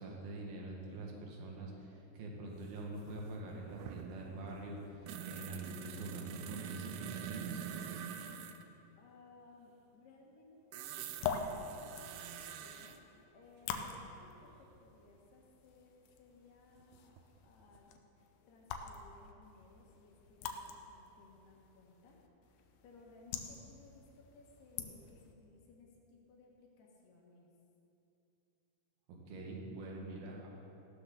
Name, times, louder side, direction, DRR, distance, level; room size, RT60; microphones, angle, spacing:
voice 1, 0.0-7.7 29.1-30.5, right 2 dB, 60° right, -1 dB, 3.3 m, -45 dB
sound 1, 2.7-2.8 3.0-8.6 10.7-13.0 15.2-15.3 16.8-17.5 17.8-17.9, right 9 dB, 80° right, 2.4 m, -46 dB
voice 2, 9.0-13.0 13.3-17.2 17.4-22.2 22.5-27.5 29.7-30.4, left 3 dB, 65° left, -1 dB, 3.5 m, -61 dB
sound 2, 10.9-25.3, left 6 dB, 90° left, 3.3 m, -46 dB
16.5 x 12.5 x 3.9 m, 2.9 s
omnidirectional pair, 5.3 m